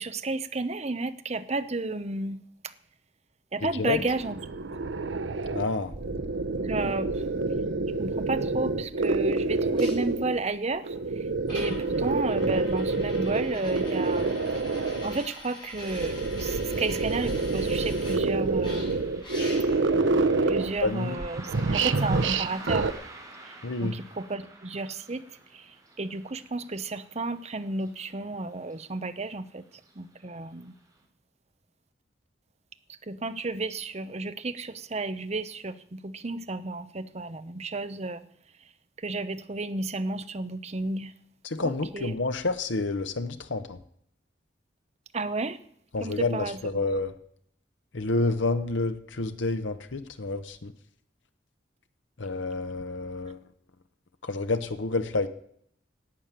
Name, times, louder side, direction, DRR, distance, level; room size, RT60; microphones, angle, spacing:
voice 1, 0.0-2.4 2.6-2.7 3.5-4.4 6.6-7.2 8.0-14.3 15.0-19.2 20.4-22.9 23.5-23.6 23.8-25.2 25.5-29.6 30.0-30.7 32.9-38.2 39.0-41.1 41.6-42.1 45.1-45.6 46.0-46.8, right 3 dB, 35° right, 12 dB, 0.8 m, -32 dB
sound 1, 3.8-10.4 10.8-15.2 15.8-20.9 21.2-22.9, right 3 dB, 90° right, 0.8 m, -27 dB
voice 2, 5.5-5.9 20.8-21.2 23.6-24.0 41.4-43.8 45.9-47.1 47.9-50.7 52.2-53.4 54.2-55.3, left 3 dB, 85° left, 9 dB, 1.0 m, -29 dB
sound 2, 9.8-9.9 10.9-11.0 11.5-18.2 18.6-19.9 20.6-20.7, left 1 dB, 25° left, 6.7 m, -44 dB
Car passing by, 17.6-28.4 28.7-28.8 29.7-29.9 30.4-30.5 31.0-31.1, right 2 dB, 20° right, 3.3 m, -47 dB
11.5 x 8.5 x 9.1 m, 0.67 s
head